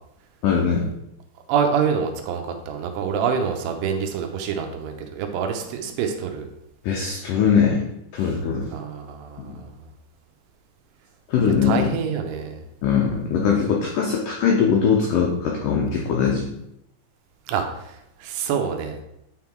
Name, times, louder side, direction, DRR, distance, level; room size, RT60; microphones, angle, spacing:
voice 1, 0.4-0.9 6.8-7.8 8.1-8.7 9.4-9.6 11.3-11.9 12.8-16.5, left 6 dB, 85° left, -1 dB, 1.9 m, -21 dB
voice 2, 1.5-6.5 8.7-9.9 11.6-12.6 17.5-19.0, right 6 dB, 80° right, 5 dB, 2.9 m, -26 dB
9.6 x 3.8 x 4.5 m, 0.81 s
omnidirectional pair, 4.9 m